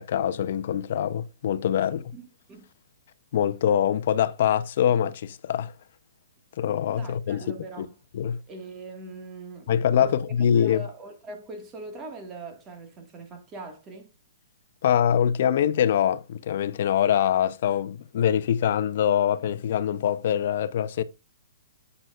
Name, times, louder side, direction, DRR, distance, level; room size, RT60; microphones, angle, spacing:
voice 1, 0.0-2.1 3.3-5.7 6.6-7.4 7.8-7.9 8.1-8.4 9.7-10.8 14.8-21.0, left 9 dB, 55° left, 0.7 m, -24 dB
voice 2, 2.1-2.7 6.9-8.0 8.5-10.2 10.6-14.1, right 2 dB, 20° right, 1.8 m, -41 dB
9.7 x 7.8 x 2.4 m
hypercardioid pair, 155°, 0 cm